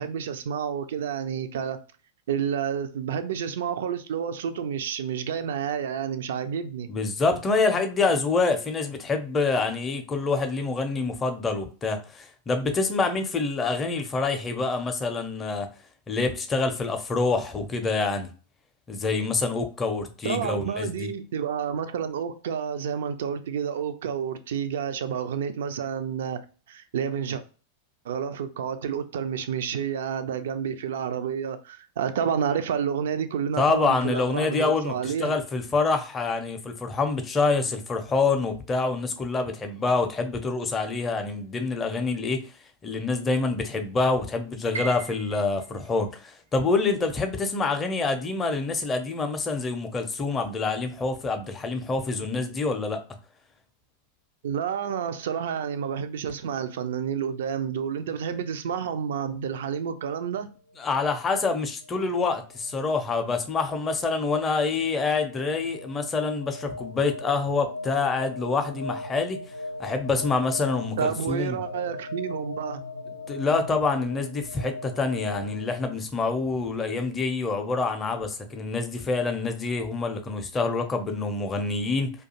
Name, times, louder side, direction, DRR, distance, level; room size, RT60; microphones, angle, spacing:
voice 1, 0.0-1.8 2.3-6.9 20.2-27.4 28.1-35.4 54.4-60.5 71.0-72.8, right 8 dB, 60° right, 0.3 m, -29 dB
voice 2, 6.9-15.7 16.1-18.3 18.9-21.1 33.6-42.4 42.8-53.0 60.8-69.4 69.8-71.6 73.3-82.1, left 3 dB, 20° left, 0.5 m, -26 dB
Piano, 44.7-50.7 51.0-52.2 52.6-52.7 53.4-53.7, right 5 dB, 85° right, 1.0 m, -43 dB
sound 1, 59.8-75.9, left 2 dB, 90° left, 0.4 m, -39 dB
2.3 x 2.2 x 2.7 m
figure-of-eight pair, 90°, 0 cm